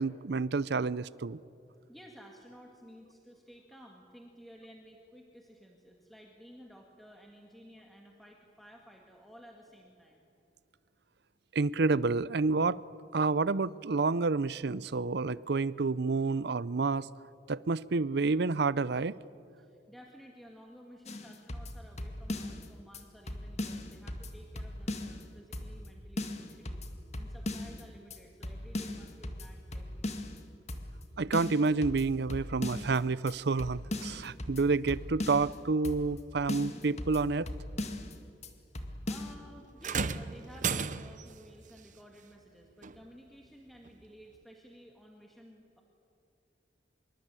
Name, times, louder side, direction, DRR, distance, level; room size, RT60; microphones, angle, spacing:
voice 1, 0.0-1.4 11.5-12.8 13.1-17.1 17.5-19.1 31.2-37.5, right 4 dB, 65° right, 0.6 m, -29 dB
voice 2, 1.9-10.3 19.6-26.8 27.1-30.1 38.8-45.8, equal, ahead, 2.0 m, -54 dB
sound 1, 21.1-22.7 22.9-23.0 23.3-25.2 25.5-25.9 26.2-27.8 28.1-28.2 28.4-30.4 30.7-31.0 31.3-33.0 33.3-33.4 33.6-35.6 35.8-36.2 36.5-38.1 38.4-38.5 38.7-39.3, left 1 dB, 40° left, 2.1 m, -38 dB
sound 2, 39.8-41.4 42.8-43.0 43.9-44.0, right 5 dB, 45° right, 0.9 m, -33 dB
25.5 x 23.0 x 9.0 m
head